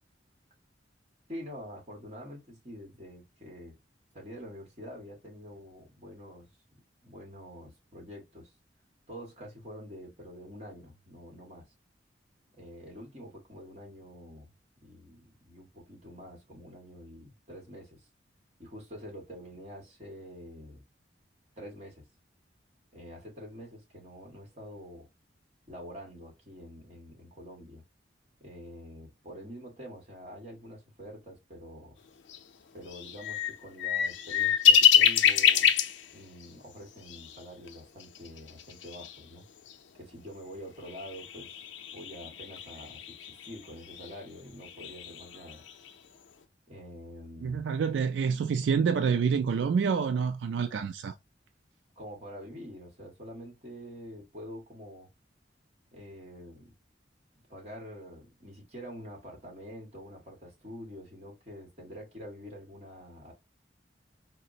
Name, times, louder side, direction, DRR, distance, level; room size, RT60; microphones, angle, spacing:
voice 1, 1.3-3.8 4.1-6.5 7.0-8.5 9.1-11.6 12.6-14.5 14.8-18.1 18.6-20.8 21.6-22.0 22.9-25.1 25.7-27.8 28.4-32.0 32.7-35.7 36.1-39.5 39.9-41.6 41.9-45.6 46.7-47.7 52.0-55.1 55.9-56.7 57.5-63.3, equal, 40° right, 1.5 m, -46 dB
sound 1, 32.3-32.4 32.9-36.0 36.4-36.5 37.1-37.4 37.7-37.8 38.0-39.2 39.7-39.8 40.9-44.1 44.6-45.9, left 8 dB, 85° left, 0.4 m, -26 dB
voice 2, 47.4-51.1, right 6 dB, 80° right, 0.3 m, -27 dB
4.1 x 2.0 x 2.6 m
head